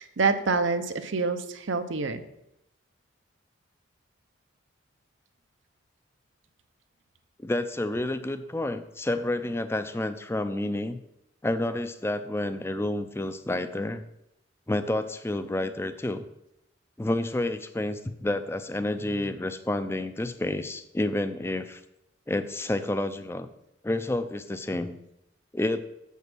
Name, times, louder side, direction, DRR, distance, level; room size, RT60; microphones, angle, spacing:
voice 1, 0.0-2.2, right 4 dB, 85° right, 9 dB, 0.8 m, -27 dB
voice 2, 7.4-11.0 11.4-14.0 14.7-16.2 17.0-21.8 22.3-23.5 23.8-25.0 25.5-25.8, left 1 dB, 15° left, 11 dB, 0.4 m, -29 dB
7.3 x 5.5 x 6.1 m, 0.83 s
head